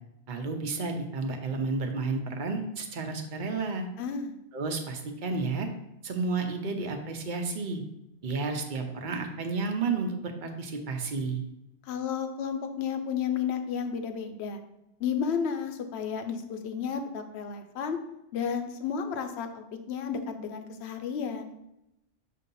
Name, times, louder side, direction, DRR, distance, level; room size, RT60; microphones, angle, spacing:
voice 1, 0.3-3.9 4.5-5.7 6.0-7.8 8.2-11.4, right 4 dB, 50° right, 4 dB, 0.9 m, -31 dB
voice 2, 4.0-4.3 11.9-14.6 15.0-18.0 18.3-21.5, left 7 dB, 75° left, 7 dB, 0.9 m, -32 dB
6.7 x 2.8 x 5.3 m, 0.86 s
omnidirectional pair, 1.1 m